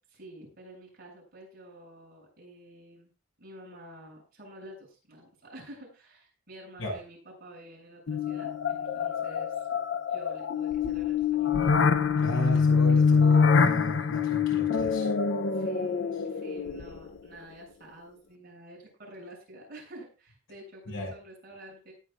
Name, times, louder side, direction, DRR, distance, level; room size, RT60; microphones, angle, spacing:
voice 1, 0.1-3.1 3.4-9.7 10.1-11.7 15.5-21.9, right 1 dB, 50° right, -3 dB, 7.8 m, -49 dB
sound 1, 8.1-17.2, left 5 dB, 60° left, 0.7 m, -25 dB
voice 2, 12.2-15.1 20.9-21.1, equal, 90° left, 0 dB, 6.4 m, -34 dB
18.0 x 9.6 x 2.5 m, 0.33 s
head